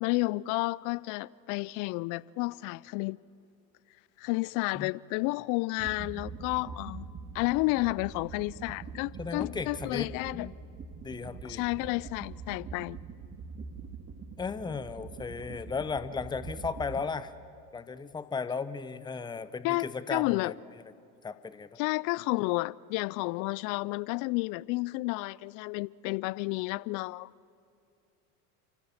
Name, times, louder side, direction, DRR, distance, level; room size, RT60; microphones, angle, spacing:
voice 1, 0.0-3.2 4.2-7.1 7.3-10.5 11.4-13.0 19.6-20.5 21.8-27.3, left 23 dB, 45° left, 0.4 m, -31 dB
sound 1, 5.8-17.0, right 5 dB, 30° right, 1.6 m, -44 dB
voice 2, 9.2-10.5 11.0-11.6 14.4-17.3 17.7-20.6 21.2-21.8, left 5 dB, 10° left, 0.7 m, -35 dB
29.0 x 15.0 x 7.1 m
hypercardioid pair, 85°, 44 cm